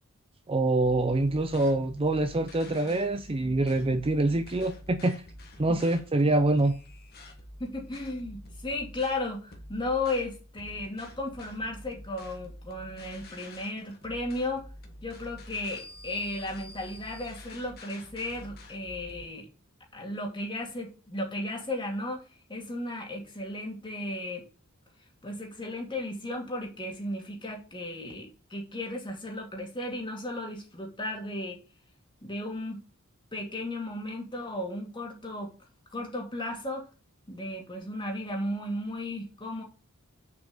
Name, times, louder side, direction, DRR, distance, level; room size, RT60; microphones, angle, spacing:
voice 1, 0.5-5.2 5.6-6.8, right 2 dB, 25° right, 0.6 m, -25 dB
sound 1, 0.8-19.3, left 1 dB, 45° left, 1.7 m, -48 dB
voice 2, 7.6-14.6 15.0-19.5 19.9-22.2 22.5-24.5 25.2-31.6 32.2-32.8 33.3-35.5 35.9-36.8 37.3-39.6, left 1 dB, 20° left, 2.4 m, -35 dB
6.9 x 5.2 x 6.7 m
head